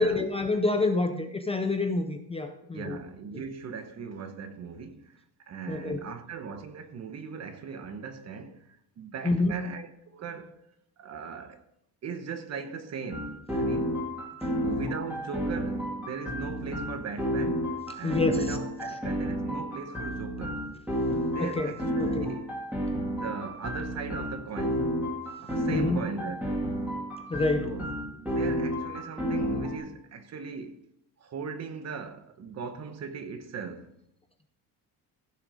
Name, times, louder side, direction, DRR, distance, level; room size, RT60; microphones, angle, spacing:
voice 1, 0.0-3.0 5.7-6.0 9.2-9.6 18.0-18.5 21.4-21.7 22.0-22.3 25.7-26.1 27.3-27.7, left 2 dB, 15° left, 0.5 m, -27 dB
voice 2, 2.7-10.6 11.0-11.6 12.0-14.0 14.6-17.6 17.9-20.7 21.0-22.5 23.0-24.9 25.4-26.6 27.6-27.9 28.2-30.8 31.2-33.9, right 5 dB, 40° right, 1.1 m, -39 dB
sound 1, 13.1-29.8, equal, 5° right, 2.5 m, -31 dB
15.0 x 6.4 x 5.0 m
cardioid pair, 175°, 39 cm